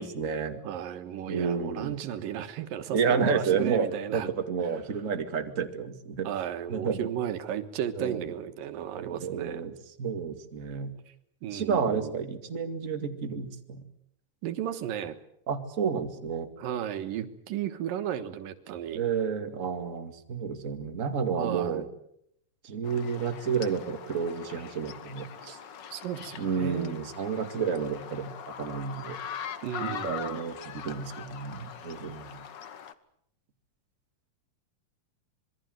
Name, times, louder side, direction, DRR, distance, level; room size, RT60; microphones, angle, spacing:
voice 1, 0.0-0.6 1.3-2.0 2.9-6.3 6.7-7.1 8.0-8.3 9.0-9.7 10.0-10.9 11.5-13.8 15.5-16.5 18.9-21.8 22.6-25.6 26.4-28.3 28.6-29.2 29.8-32.4, right 6 dB, 25° right, 6 dB, 2.1 m, -30 dB
voice 2, 0.6-4.3 6.2-9.7 11.4-12.1 14.4-15.2 16.6-19.0 21.3-21.9 25.9-27.0 29.6-30.4, right 10 dB, 90° right, 9 dB, 3.1 m, -34 dB
sound 1, 22.8-32.9, left 8 dB, 75° left, 1.0 m, -42 dB
26.5 x 23.0 x 7.9 m, 0.74 s
omnidirectional pair, 3.9 m